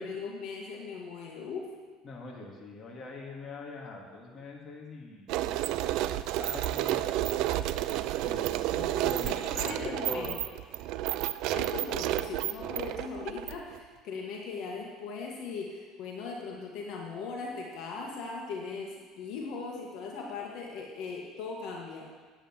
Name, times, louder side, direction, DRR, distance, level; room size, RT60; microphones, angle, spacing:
voice 1, 0.0-1.7 8.7-10.4 11.5-22.1, left 4 dB, 65° left, -1 dB, 1.9 m, -39 dB
voice 2, 2.0-8.7 9.0-10.4, left 2 dB, 30° left, -1 dB, 2.4 m, -43 dB
sound 1, 5.3-13.8, right 14 dB, 70° right, 0.4 m, -31 dB
9.7 x 8.9 x 7.4 m, 1.5 s
cardioid pair, 120°, 0 cm